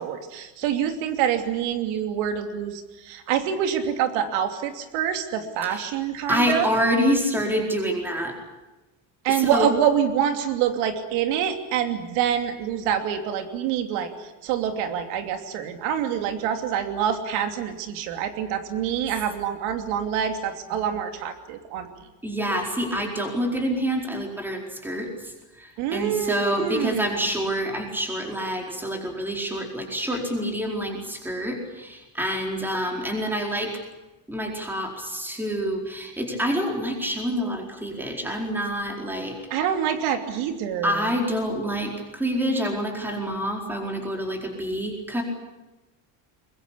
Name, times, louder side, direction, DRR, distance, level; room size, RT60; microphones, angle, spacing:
voice 1, 0.0-6.7 9.2-21.9 25.8-27.1 39.5-41.1, right 9 dB, 85° right, 6 dB, 3.0 m, -26 dB
voice 2, 6.3-8.3 9.3-9.7 22.2-25.1 25.6-33.7 34.3-39.4 40.8-45.2, equal, 5° right, 1 dB, 4.6 m, -27 dB
22.5 x 22.5 x 8.6 m, 1.1 s
cardioid pair, 170°, 42 cm